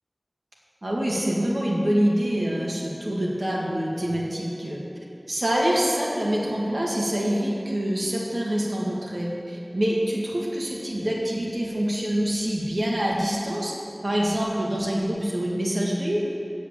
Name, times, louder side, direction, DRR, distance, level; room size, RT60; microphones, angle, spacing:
voice 1, 0.8-4.8 5.3-13.7 14.0-16.3, equal, 70° right, -4 dB, 1.8 m, -25 dB
8.3 x 7.7 x 7.1 m, 3.0 s
wide cardioid pair, 40°, 0 cm